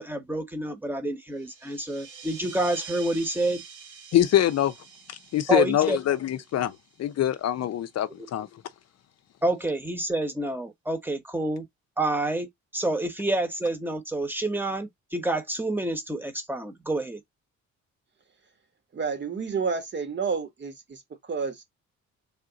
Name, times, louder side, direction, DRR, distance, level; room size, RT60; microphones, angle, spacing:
voice 1, 0.0-3.6 5.5-6.0 9.4-11.6 12.0-17.2, right 1 dB, 5° right, 1.1 m, -28 dB
sound 1, 1.3-7.4, right 6 dB, 80° right, 1.6 m, -46 dB
voice 2, 4.1-4.7 5.3-8.5, left 12 dB, 60° left, 0.6 m, -24 dB
voice 3, 18.9-21.6, right 5 dB, 35° right, 1.2 m, -30 dB
3.6 x 2.4 x 3.9 m
cardioid pair, 90°, 30 cm